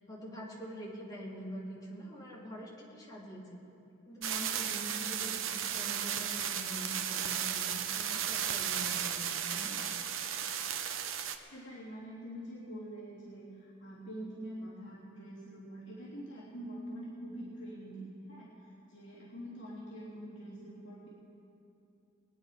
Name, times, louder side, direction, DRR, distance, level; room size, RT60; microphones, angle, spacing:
voice 1, 0.1-3.5 4.1-9.9, equal, 20° left, -5 dB, 3.2 m, -45 dB
sound 1, 4.2-11.4, right 9 dB, 80° right, 0.8 m, -34 dB
voice 2, 11.5-18.5 18.9-21.1, right 1 dB, 65° left, -8 dB, 3.4 m, -45 dB
22.5 x 9.5 x 5.1 m, 2.7 s
head